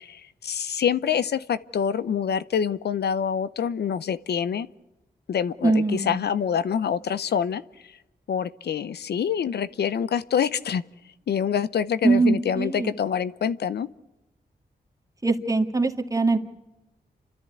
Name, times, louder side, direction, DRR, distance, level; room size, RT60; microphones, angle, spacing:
voice 1, 0.0-4.7 5.3-8.0 8.3-10.8 11.3-13.9, left 8 dB, 85° left, 16 dB, 0.7 m, -26 dB
voice 2, 5.6-6.3 12.0-12.9 15.2-16.4, right 3 dB, 20° right, 6 dB, 2.0 m, -22 dB
29.0 x 13.5 x 9.5 m, 1.0 s
cardioid pair, 80°, 17 cm